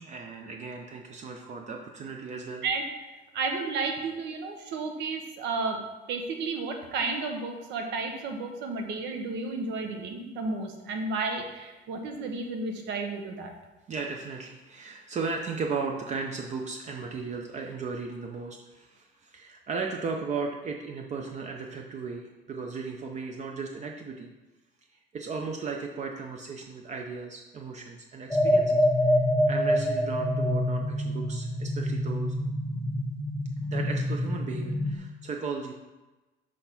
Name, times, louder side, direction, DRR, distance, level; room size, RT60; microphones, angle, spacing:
voice 1, 0.0-2.6 13.9-24.3 25.1-29.2 29.5-32.4 33.7-35.8, right 4 dB, 40° right, 2 dB, 0.6 m, -36 dB
voice 2, 3.3-5.8 6.1-13.5, right 3 dB, 80° right, 4 dB, 1.1 m, -32 dB
sound 1, 28.3-35.0, equal, 5° left, 0.6 m, -26 dB
6.4 x 3.4 x 5.8 m, 1.1 s
cardioid pair, 125°, 18 cm